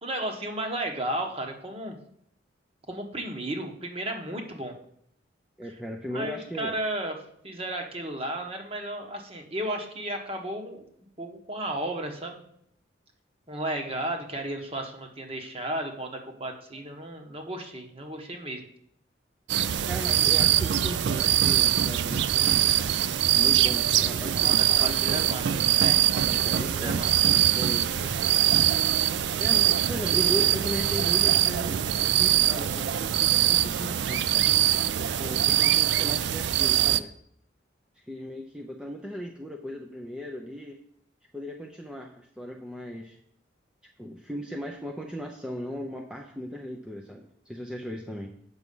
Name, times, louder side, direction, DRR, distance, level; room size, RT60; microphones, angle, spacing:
voice 1, 0.0-2.0 2.9-4.7 6.1-7.1 7.4-10.9 11.2-12.4 13.5-18.6 24.3-25.4 25.8-27.2, right 1 dB, 30° right, 3 dB, 1.2 m, -34 dB
voice 2, 5.6-6.7 16.7-16.8 19.9-23.0 23.3-25.6 26.3-27.0 27.3-28.1 29.4-34.5 35.2-37.1 37.9-40.8 41.3-43.2 44.0-48.3, equal, 5° right, 0 dB, 0.5 m, -37 dB
sound 1, 19.5-37.0, right 11 dB, 60° right, 0.4 m, -23 dB
8.1 x 6.2 x 5.4 m, 0.70 s
head